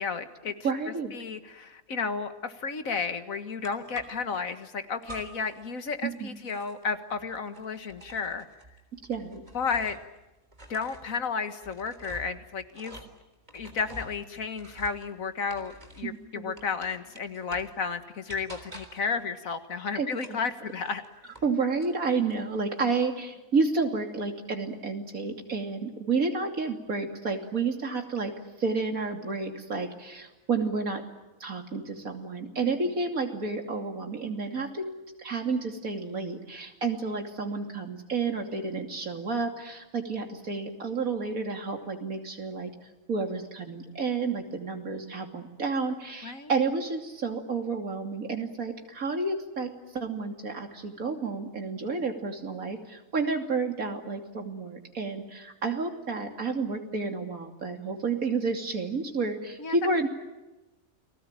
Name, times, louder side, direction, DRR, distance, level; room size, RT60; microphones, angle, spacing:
voice 1, 0.0-0.5 1.1-8.5 9.5-10.0 10.7-13.0 13.5-21.0 32.6-32.8 46.2-46.5 59.6-59.8, left 5 dB, 70° left, 9 dB, 2.0 m, -32 dB
voice 2, 0.6-1.1 6.0-6.4 9.1-9.4 16.0-16.5 19.9-20.4 21.4-28.3 28.6-31.0 31.4-42.7 43.1-60.1, right 4 dB, 75° right, 4 dB, 3.3 m, -30 dB
sound 1, 3.6-4.4 5.0-5.6 5.9-10.2 10.5-16.2 16.6-17.8 18.3-19.1 20.1-21.5 21.8-22.4, right 1 dB, 30° right, 3.7 m, -48 dB
29.5 x 20.0 x 9.0 m, 1.0 s
omnidirectional pair, 1.5 m